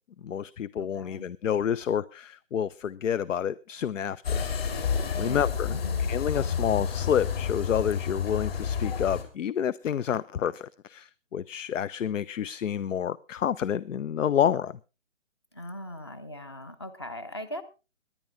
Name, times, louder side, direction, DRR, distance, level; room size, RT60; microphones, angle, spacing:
voice 1, 0.2-5.8 6.1-14.8, left 9 dB, 75° left, 21 dB, 0.6 m, -29 dB
voice 2, 0.7-1.2 5.2-6.1 15.5-17.6, equal, 20° left, 13 dB, 0.6 m, -39 dB
sound 1, 4.2-9.2, left 7 dB, 50° left, 3.3 m, -29 dB
19.0 x 10.5 x 3.6 m, 0.30 s
hypercardioid pair, 160°, 38 cm